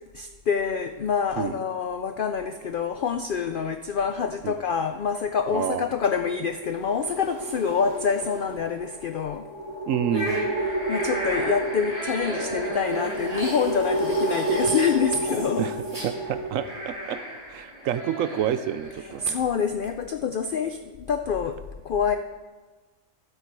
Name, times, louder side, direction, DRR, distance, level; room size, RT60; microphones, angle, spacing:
voice 1, 0.1-9.5 10.9-15.7 19.0-21.6 21.8-22.2, left 6 dB, 85° left, 7 dB, 0.4 m, -26 dB
voice 2, 5.5-5.8 9.9-10.4 15.6-15.7 16.0-17.2 17.5-19.4, right 9 dB, 70° right, 11 dB, 0.9 m, -28 dB
sound 1, 6.6-16.5, right 1 dB, 55° right, 2.2 m, -30 dB
sound 2, 10.1-19.3, equal, 30° right, 3.6 m, -34 dB
12.5 x 8.2 x 4.6 m, 1.3 s
omnidirectional pair, 1.5 m